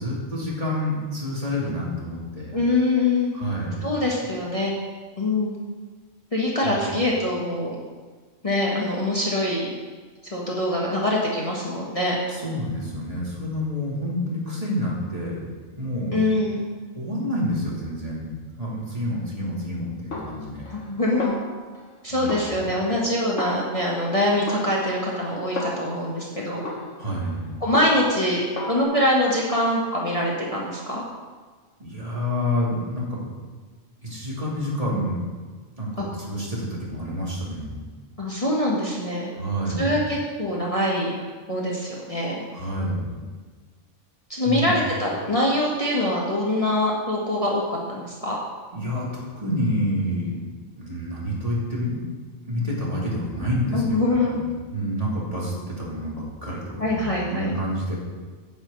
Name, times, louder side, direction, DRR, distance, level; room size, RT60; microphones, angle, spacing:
voice 1, 0.0-2.6 3.3-3.8 6.6-6.8 12.3-16.2 16.9-18.3 18.6-20.7 22.1-22.3 27.0-27.5 31.8-33.2 34.0-35.2 35.8-37.8 39.3-39.9 42.5-43.0 44.4-44.7 48.7-50.4 50.8-52.0 52.4-54.0 54.3-54.4 54.7-57.0 57.3-57.9, equal, 30° right, -6 dB, 2.9 m, -28 dB
voice 2, 2.5-3.3 3.8-4.7 5.2-5.5 6.3-7.8 8.4-9.7 10.2-12.2 16.1-16.7 20.7-21.4 22.0-26.6 27.6-31.0 36.0-36.1 38.2-39.3 39.8-41.2 41.5-42.4 44.3-48.4 53.7-54.4 56.8-57.5, left 1 dB, 25° left, -4 dB, 1.6 m, -24 dB
Snare drum, 20.1-20.9 21.2-22.0 22.3-24.1 24.5-26.1 26.6-28.2 28.6-28.8, left 2 dB, 70° left, 1.6 m, -34 dB
9.8 x 6.2 x 7.7 m, 1.5 s
omnidirectional pair, 1.3 m